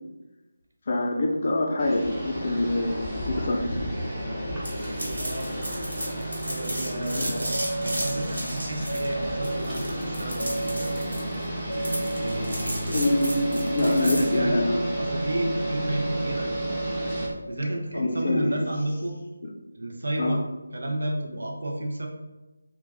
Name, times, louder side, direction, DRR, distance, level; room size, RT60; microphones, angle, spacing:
voice 1, 0.9-3.7 7.2-7.3 12.9-14.8 17.9-18.6 20.2-20.4, left 2 dB, 45° left, 0 dB, 0.5 m, -25 dB
sound 1, 1.8-17.3, right 1 dB, 5° right, 0.7 m, -32 dB
sound 2, 4.6-14.4, equal, 90° right, 1.3 m, -34 dB
voice 2, 5.0-5.5 6.5-11.1 12.2-13.0 13.7-16.6 17.4-19.1 19.7-20.4 20.7-22.1, right 1 dB, 70° right, 1 dB, 0.6 m, -32 dB
sound 3, 7.5-8.2 8.9-9.6 10.4-11.1 11.7-12.4 13.0-17.3, right 2 dB, 80° left, 0.7 m, -32 dB
2.2 x 2.2 x 3.3 m, 1.1 s
figure-of-eight pair, 165°, 0 cm